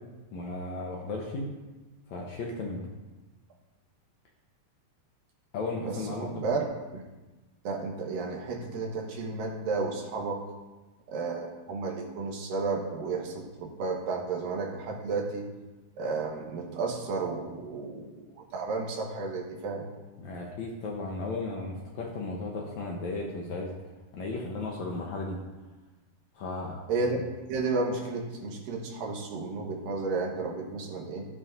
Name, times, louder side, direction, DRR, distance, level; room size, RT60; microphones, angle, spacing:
voice 1, 0.3-1.5 2.1-2.8 5.5-6.6 20.2-23.7 24.1-25.4 26.4-26.8, left 2 dB, 70° left, -1 dB, 1.9 m, -35 dB
voice 2, 5.8-6.6 6.9-7.0 7.6-10.4 11.1-15.5 16.0-19.9 26.9-27.2 27.5-31.2, right 4 dB, 70° right, 0 dB, 2.9 m, -32 dB
13.0 x 11.0 x 2.6 m, 1.2 s
omnidirectional pair, 4.2 m